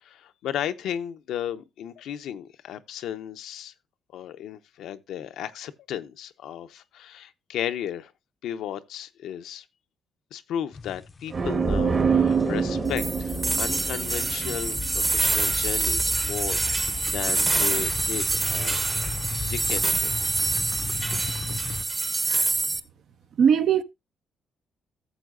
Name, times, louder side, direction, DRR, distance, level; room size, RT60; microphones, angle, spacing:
voice 1, 0.0-3.7 4.1-8.1 8.4-9.7 10.3-18.8 19.5-20.1, left 10 dB, 80° left, 0.7 m, -34 dB
sound 1, 10.7-11.5 11.8-21.8, left 4 dB, 30° left, 0.5 m, -36 dB
sound 2, 11.3-15.0, right 5 dB, 45° right, 1.4 m, -25 dB
sound 3, 13.0-22.8, right 3 dB, 30° right, 0.9 m, -26 dB
voice 2, 23.4-23.8, right 7 dB, 65° right, 0.7 m, -21 dB
14.0 x 7.2 x 2.5 m
cardioid pair, 90°, 0 cm